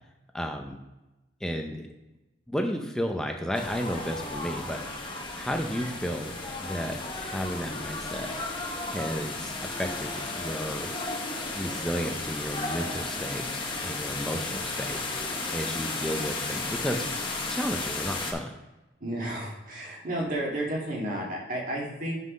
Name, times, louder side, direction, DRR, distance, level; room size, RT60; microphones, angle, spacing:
voice 1, 0.3-0.8 1.4-1.9 2.5-5.1 5.3-8.3 8.9-10.9 11.5-15.0 15.5-17.1 17.4-18.5, equal, 5° left, 3 dB, 0.5 m, -33 dB
sound 1, 3.5-18.3, left 3 dB, 25° left, 1.0 m, -34 dB
voice 2, 19.0-22.2, right 1 dB, 45° right, -2 dB, 1.8 m, -32 dB
6.1 x 5.5 x 5.1 m, 1.0 s
head